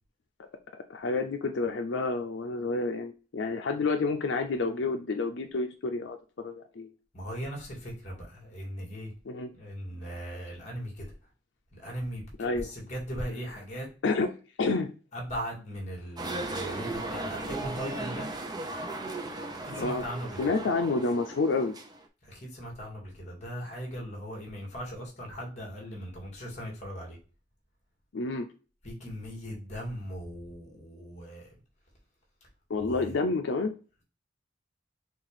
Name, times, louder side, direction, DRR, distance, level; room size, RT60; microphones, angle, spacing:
voice 1, 0.9-6.9 9.3-9.5 12.4-12.7 14.0-14.3 14.6-14.9 19.8-20.0 20.4-21.8 28.1-28.5 32.7-33.7, left 3 dB, 85° left, 0.5 m, -29 dB
voice 2, 7.1-9.1 9.6-11.1 11.7-13.9 15.1-18.3 19.6-20.5 22.2-27.2 28.8-31.5 32.8-33.2, equal, 40° left, 2.0 m, -39 dB
sound 1, 16.2-22.0, right 2 dB, 20° right, 0.6 m, -36 dB
6.1 x 2.5 x 3.3 m
head